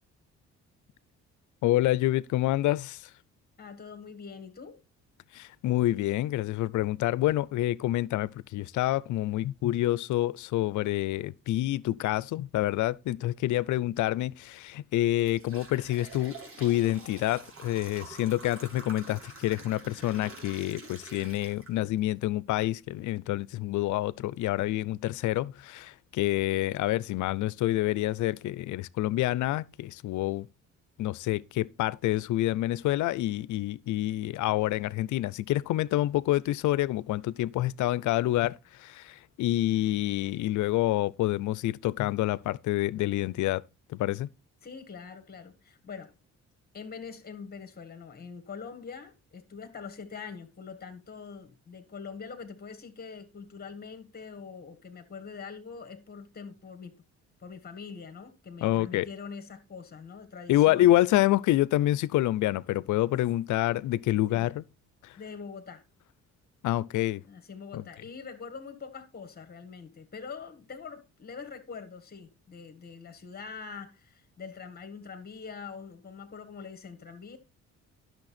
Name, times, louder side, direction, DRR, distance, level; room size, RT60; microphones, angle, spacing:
voice 1, 1.6-3.1 5.3-30.5 31.0-43.6 43.9-44.3 58.6-59.1 60.5-64.6 65.0-65.1 66.6-67.2 67.7-67.8, left 15 dB, 75° left, 0.5 m, -27 dB
voice 2, 3.6-4.8 44.6-46.1 46.7-56.9 57.4-61.0 64.3-64.5 65.2-65.8 67.3-77.4, left 5 dB, 30° left, 1.7 m, -43 dB
sound 1, 14.3-14.5 15.0-22.1 22.6-22.7 23.5-23.6 24.1-24.2 24.7-24.9, right 3 dB, 45° right, 3.3 m, -47 dB
10.5 x 6.5 x 4.2 m
cardioid pair, 90°, 30 cm